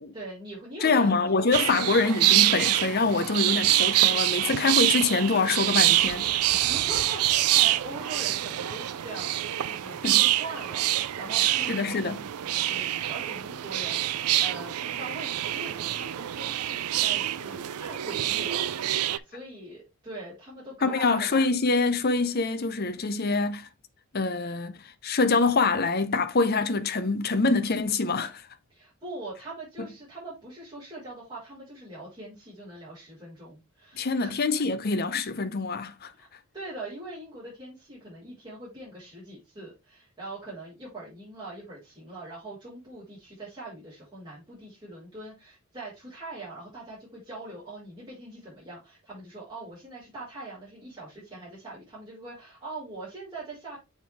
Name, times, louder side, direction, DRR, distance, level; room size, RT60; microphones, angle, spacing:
voice 1, 0.1-2.0 6.5-12.1 12.4-21.4 28.7-34.3 36.2-36.3 36.5-53.8, right 2 dB, 20° right, 4.8 m, -42 dB
voice 2, 0.8-6.3 10.0-10.2 11.7-12.2 20.8-23.7 24.1-28.4 29.8-29.9 34.0-36.1, left 3 dB, 45° left, 0.6 m, -25 dB
sound 1, 1.5-19.2, right 14 dB, 85° right, 0.4 m, -26 dB
7.6 x 4.5 x 3.4 m
head